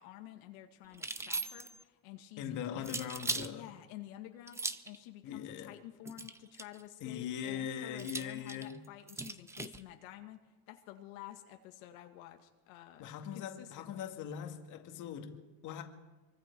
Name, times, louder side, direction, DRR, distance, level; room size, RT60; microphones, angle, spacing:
voice 1, 0.0-3.0 3.5-4.6 4.8-13.1 13.3-14.1, left 14 dB, 85° left, 2.1 m, -51 dB
sound 1, 0.9-1.8 2.8-3.5 4.5-5.0 6.0-6.8 8.0-9.8, right 3 dB, 5° right, 0.6 m, -39 dB
voice 2, 2.4-3.7 5.2-5.8 7.0-8.8 13.0-15.8, left 9 dB, 45° left, 2.1 m, -41 dB
24.0 x 24.0 x 4.7 m
supercardioid pair, 135°, 40 cm